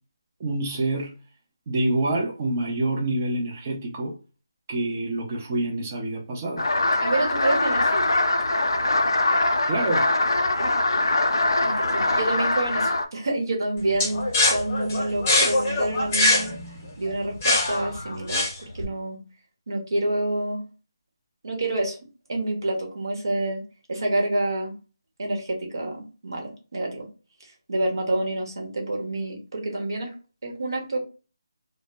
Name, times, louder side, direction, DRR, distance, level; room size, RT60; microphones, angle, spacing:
voice 1, 0.4-1.1 1.7-4.1 4.7-6.6 9.6-10.1, right 2 dB, 25° right, 0.5 m, -26 dB
sound 1, 6.6-13.1, left 2 dB, 85° left, 0.4 m, -22 dB
voice 2, 7.0-8.1 10.6-10.7 11.6-16.5 17.0-19.2 19.7-20.6 21.4-22.0 22.3-23.6 23.9-24.7 25.2-27.1 27.7-30.1 30.4-31.0, right 2 dB, 65° right, 0.9 m, -28 dB
sound 2, 14.0-18.8, left 2 dB, 25° left, 0.6 m, -23 dB
2.1 x 2.0 x 3.3 m
figure-of-eight pair, 165°, 2 cm